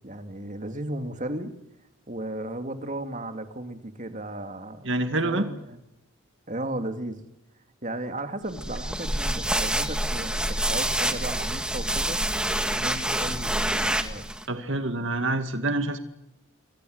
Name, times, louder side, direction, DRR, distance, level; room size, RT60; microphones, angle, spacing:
voice 1, 0.0-1.5 2.1-5.8 6.5-7.3 7.8-12.2 12.7-14.3, right 1 dB, 35° right, 7 dB, 2.5 m, -35 dB
voice 2, 4.8-5.5 14.5-16.0, right 2 dB, 60° right, 8 dB, 2.0 m, -26 dB
sound 1, 8.5-14.4, right 1 dB, 5° right, 1.8 m, -27 dB
28.0 x 23.0 x 8.0 m, 0.87 s
head